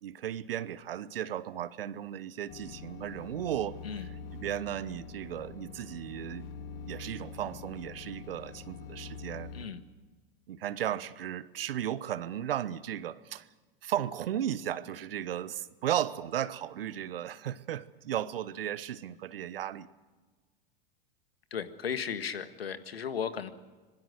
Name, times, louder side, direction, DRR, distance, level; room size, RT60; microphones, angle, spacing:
voice 1, 0.0-6.5 6.9-9.5 10.5-13.5 13.8-19.9, right 11 dB, 75° right, 17 dB, 1.1 m, -35 dB
sound 1, 2.5-9.6, left 5 dB, 60° left, 2.2 m, -45 dB
voice 2, 21.5-23.5, left 7 dB, 85° left, 11 dB, 1.7 m, -35 dB
26.0 x 21.0 x 6.5 m, 1.3 s
hypercardioid pair, 95°, 29 cm